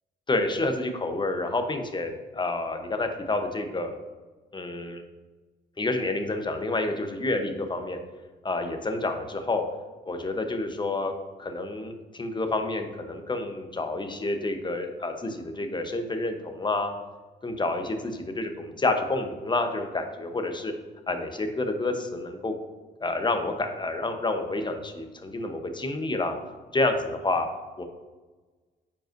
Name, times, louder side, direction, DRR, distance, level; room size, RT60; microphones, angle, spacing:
voice 1, 0.3-3.9 4.5-5.0 5.8-8.0 8.4-9.6 10.1-11.1 11.4-16.9 17.4-20.7 21.1-22.5 23.0-26.3 26.7-27.5 27.8-27.9, left 2 dB, 25° left, 6 dB, 0.8 m, -29 dB
8.8 x 5.4 x 2.6 m, 1.3 s
cardioid pair, 90°, 20 cm